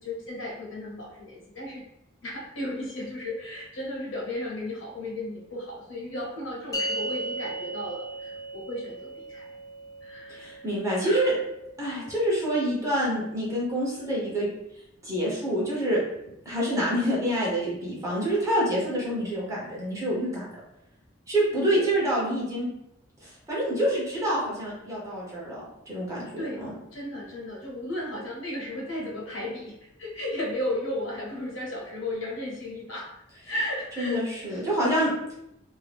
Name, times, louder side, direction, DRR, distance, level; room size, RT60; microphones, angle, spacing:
voice 1, 0.0-1.8 2.2-9.4 10.0-10.7 11.0-11.4 21.7-21.9 26.4-26.6 26.9-29.7 30.0-33.1 33.5-34.2 34.5-34.6, left 1 dB, 75° left, -3 dB, 0.9 m, -34 dB
sound 1, 6.7-13.3, right 1 dB, 20° left, 0.4 m, -37 dB
voice 2, 10.3-11.3 11.8-14.5 15.0-16.0 16.4-20.5 21.3-22.7 23.2-26.7 34.0-35.1, right 1 dB, 15° right, -6 dB, 0.9 m, -27 dB
2.7 x 2.1 x 3.3 m, 0.83 s
head